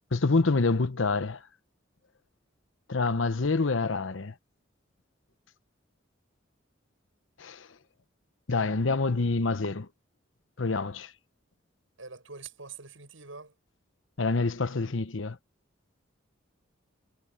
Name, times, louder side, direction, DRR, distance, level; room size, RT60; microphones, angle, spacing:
voice 1, 0.1-1.4 2.9-4.3 7.4-7.7 8.5-9.9 10.6-11.1 14.2-15.4, left 3 dB, 75° left, 0.9 m, -27 dB
voice 2, 12.0-13.5, right 4 dB, 85° right, 7.5 m, -45 dB
head